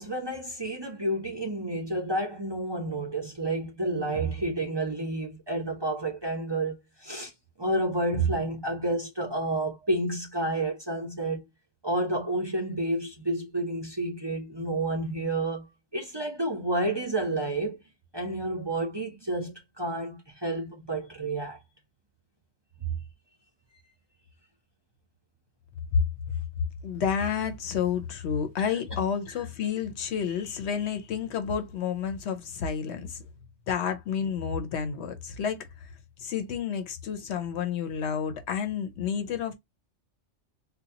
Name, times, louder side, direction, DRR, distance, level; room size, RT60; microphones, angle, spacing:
voice 1, 0.0-7.3 7.6-11.4 11.8-17.8 18.1-21.6 28.7-29.0, right 2 dB, 25° right, 0.8 m, -30 dB
voice 2, 26.8-33.2 33.7-35.9 36.2-39.5, left 7 dB, 65° left, 0.9 m, -30 dB
4.0 x 2.3 x 2.7 m
omnidirectional pair, 1.3 m